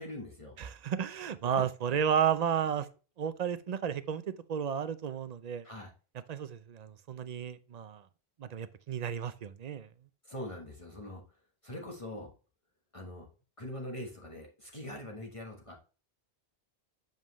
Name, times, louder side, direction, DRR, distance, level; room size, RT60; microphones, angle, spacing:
voice 1, 0.0-0.6 5.6-5.9 10.3-11.2 11.6-12.3 12.9-13.3 13.6-15.8, left 1 dB, 30° left, 1.3 m, -42 dB
voice 2, 0.6-2.9 3.2-4.2 4.5-5.7 6.3-8.1 8.4-9.9, right 8 dB, 50° right, 0.5 m, -32 dB
7.5 x 5.3 x 3.0 m
omnidirectional pair, 1.1 m